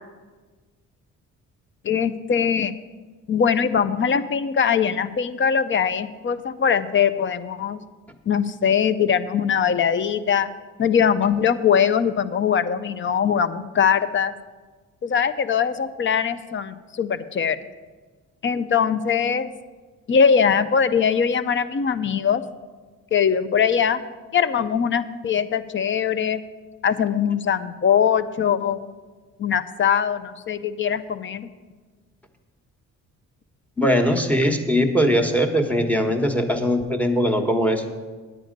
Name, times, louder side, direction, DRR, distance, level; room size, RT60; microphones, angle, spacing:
voice 1, 1.8-2.7 3.3-7.8 8.3-10.5 10.8-14.3 15.0-17.6 18.4-19.5 20.1-22.4 23.1-24.0 24.3-26.4 26.8-28.9 29.4-31.5, left 7 dB, 40° left, 13 dB, 0.6 m, -21 dB
voice 2, 33.8-37.8, equal, 5° left, 5 dB, 1.2 m, -20 dB
9.0 x 9.0 x 5.2 m, 1.4 s
cardioid pair, 90°, 30 cm